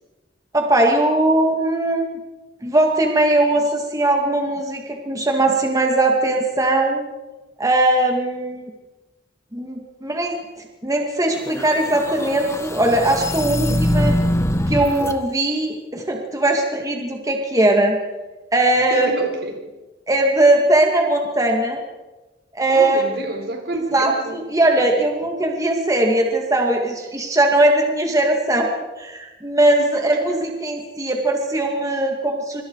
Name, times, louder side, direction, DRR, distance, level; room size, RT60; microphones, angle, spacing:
voice 1, 0.5-2.2 2.6-7.1 7.6-8.7 9.5-10.4 10.8-14.1 14.7-18.0 18.5-19.1 20.1-21.8 22.5-23.0 23.7-28.7 29.0-32.6, right 1 dB, 20° right, 2 dB, 2.3 m, -19 dB
sound 1, 11.4-15.2, left 1 dB, 15° left, 1.3 m, -23 dB
voice 2, 18.9-19.6 22.7-24.4 29.8-30.4, right 2 dB, 65° right, 4 dB, 4.2 m, -30 dB
26.0 x 25.0 x 4.8 m, 1.1 s
head